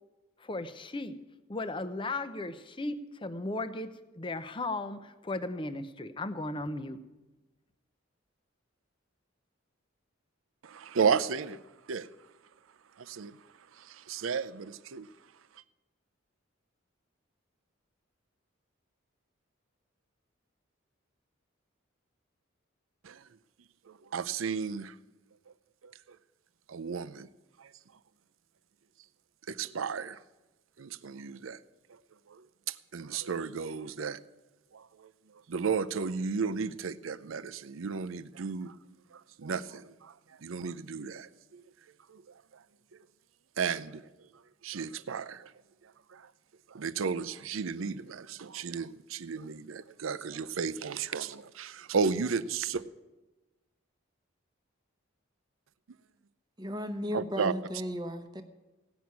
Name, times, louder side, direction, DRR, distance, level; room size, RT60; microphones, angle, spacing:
voice 1, 0.4-1.2 1.5-7.0, left 2 dB, 25° left, 0.6 m, -36 dB
voice 2, 10.6-11.6 11.9-12.1 13.0-13.4 13.7-15.1 23.0-23.3 23.9-24.9 25.8-25.9 26.7-27.3 27.6-27.7 29.5-30.2 30.8-31.6 32.3-34.2 34.7-35.1 35.5-38.8 39.1-41.6 42.1-42.6 43.6-44.0 44.3-45.5 45.8-46.3 46.7-52.8 57.1-57.5, right 5 dB, 80° right, 0.6 m, -34 dB
voice 3, 56.6-58.4, left 1 dB, 20° right, 0.9 m, -35 dB
16.5 x 6.1 x 9.5 m
head